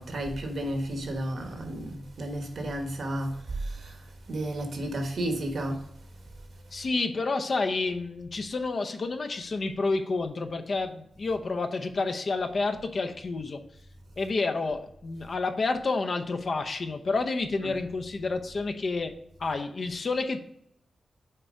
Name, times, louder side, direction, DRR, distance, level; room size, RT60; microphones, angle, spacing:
voice 1, 0.0-4.0 4.3-5.9 17.6-17.7, right 1 dB, 65° right, 1.2 m, -32 dB
voice 2, 6.7-13.6 14.2-19.1 19.4-20.4, left 3 dB, 50° left, 0.7 m, -29 dB
6.7 x 4.5 x 3.7 m
wide cardioid pair, 135°, 0 cm